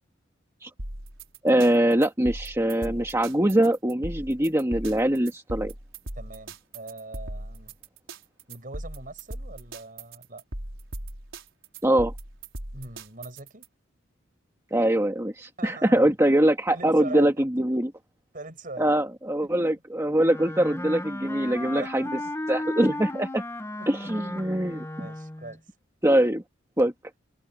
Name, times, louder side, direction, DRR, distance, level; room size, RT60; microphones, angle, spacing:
sound 1, 0.8-13.7, right 1 dB, 75° right, 5.0 m, -38 dB
voice 1, 1.4-5.7 11.8-12.1 14.7-17.9 18.8-22.0 22.5-23.4 23.9-25.1 26.0-26.4 26.8-26.9, right 1 dB, 15° right, 1.7 m, -23 dB
voice 2, 6.2-7.8 8.5-10.4 12.7-13.7 15.6-16.1 16.7-17.4 18.3-18.9 19.4-19.7 21.6-22.3 23.7-24.4 25.0-25.6, right 2 dB, 45° right, 6.6 m, -41 dB
Wind instrument woodwind instrument, 20.2-25.6, left 1 dB, 15° left, 0.9 m, -35 dB
head